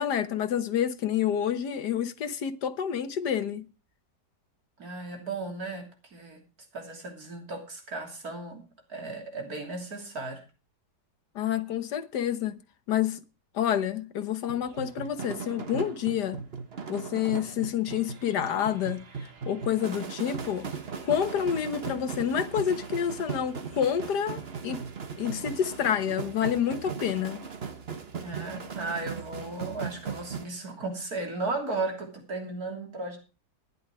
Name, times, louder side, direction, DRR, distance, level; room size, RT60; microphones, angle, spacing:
voice 1, 0.0-3.6 11.3-12.6 12.9-13.2 13.5-16.4 16.9-19.0 19.5-20.7 21.0-24.8 25.2-27.4, left 9 dB, 70° left, 1.7 m, -28 dB
voice 2, 4.8-6.4 6.7-8.6 8.9-10.4 28.2-33.2, right 3 dB, 55° right, 3.5 m, -35 dB
sound 1, 14.5-30.4, right 5 dB, 40° right, 1.3 m, -38 dB
12.5 x 10.5 x 4.8 m
omnidirectional pair, 1.9 m